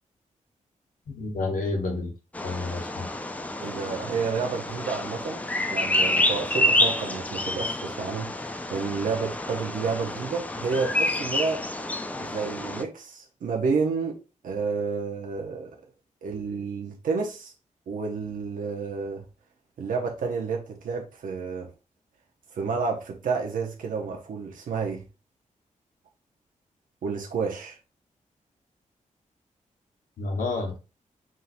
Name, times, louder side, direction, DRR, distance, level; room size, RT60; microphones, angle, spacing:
voice 1, 1.1-2.1 2.4-3.1 30.2-30.8, left 3 dB, 85° left, 1.3 m, -30 dB
Bird vocalization bird call bird song, 2.3-12.8, left 1 dB, 10° left, 0.4 m, -28 dB
voice 2, 3.6-11.6 12.2-15.8 16.2-17.5 17.9-19.2 19.8-21.7 22.5-25.0 27.0-27.8, right 5 dB, 85° right, 0.8 m, -30 dB
4.3 x 3.6 x 2.6 m
wide cardioid pair, 140°, 14 cm